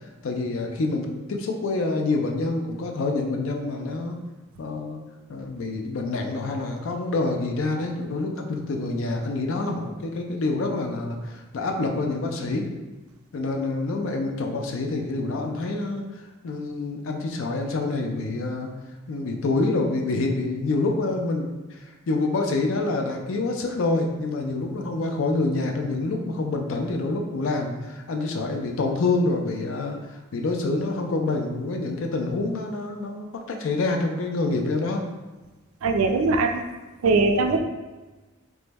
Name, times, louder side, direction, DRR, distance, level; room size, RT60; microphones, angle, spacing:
voice 1, 0.2-4.2 4.6-5.0 5.3-12.7 13.3-16.0 16.4-18.7 19.1-30.0 30.3-35.0 37.4-37.6, left 3 dB, 65° left, 3 dB, 0.4 m, -27 dB
voice 2, 35.8-36.6 37.0-37.6, right 3 dB, 75° right, 5 dB, 0.3 m, -21 dB
3.0 x 2.0 x 3.4 m, 1.2 s
head